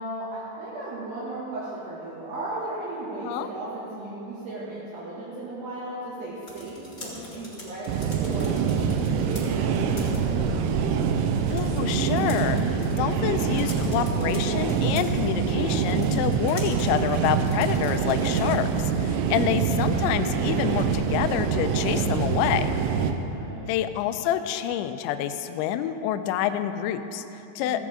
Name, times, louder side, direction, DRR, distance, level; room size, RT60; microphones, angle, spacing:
voice 1, 0.0-8.5 8.9-10.5 23.2-23.8 27.6-27.8, right 2 dB, 60° right, -9 dB, 3.8 m, -36 dB
sound 1, 6.2-18.7, left 2 dB, 40° left, 0.8 m, -45 dB
sound 2, 7.9-23.1, right 6 dB, 90° right, 2.4 m, -25 dB
voice 2, 11.5-22.8 23.7-27.8, left 10 dB, 85° left, 8 dB, 2.8 m, -27 dB
16.0 x 15.5 x 3.8 m, 3.0 s
omnidirectional pair, 5.7 m